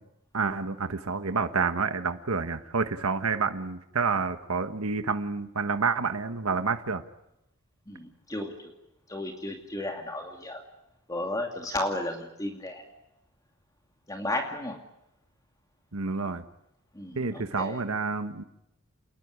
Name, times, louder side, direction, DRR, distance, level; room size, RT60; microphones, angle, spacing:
voice 1, 0.3-7.0 15.9-16.4 17.1-18.4, right 4 dB, 85° right, 8 dB, 1.3 m, -29 dB
voice 2, 7.9-8.7 9.1-10.6 11.1-12.8 14.1-14.8 16.9-17.8, left 1 dB, 15° left, 3 dB, 2.5 m, -34 dB
28.0 x 20.0 x 9.5 m, 0.88 s
head